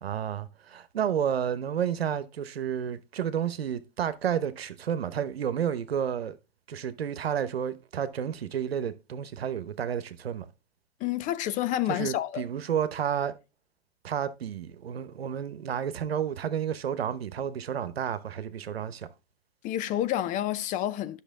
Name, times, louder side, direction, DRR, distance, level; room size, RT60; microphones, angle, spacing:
voice 1, 0.0-6.4 6.7-10.5 11.9-13.3 14.0-19.1, right 8 dB, 80° right, 1.0 m, -31 dB
voice 2, 11.0-12.4 19.6-21.2, left 12 dB, 25° left, 0.5 m, -29 dB
10.0 x 6.2 x 3.6 m
hypercardioid pair, 115°, 30 cm